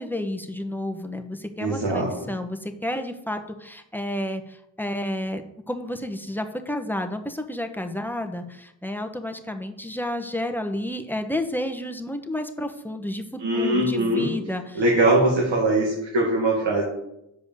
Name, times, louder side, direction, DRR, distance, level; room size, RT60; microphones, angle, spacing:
voice 1, 0.0-14.8, left 1 dB, 5° left, 5 dB, 1.1 m, -31 dB
voice 2, 1.6-2.1 13.4-14.3 14.7-16.8, right 2 dB, 65° right, -3 dB, 2.2 m, -21 dB
6.5 x 5.1 x 6.9 m, 0.83 s
cardioid pair, 50°, 47 cm